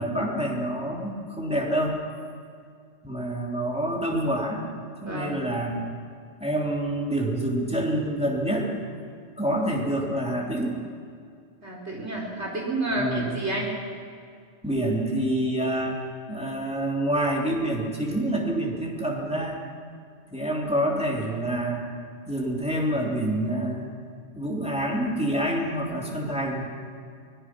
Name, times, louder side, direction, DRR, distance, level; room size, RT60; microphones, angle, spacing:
voice 1, 0.0-2.0 3.0-4.6 5.0-5.8 6.4-8.7 9.4-10.7 12.9-13.3 14.6-16.0 16.3-19.6 20.3-21.9 22.3-23.9 24.3-26.7, right 1 dB, 5° right, -2 dB, 3.2 m, -27 dB
voice 2, 5.0-5.4 11.6-13.7, right 2 dB, 65° right, -2 dB, 4.8 m, -30 dB
24.0 x 19.0 x 6.2 m, 2.3 s
omnidirectional pair, 1.2 m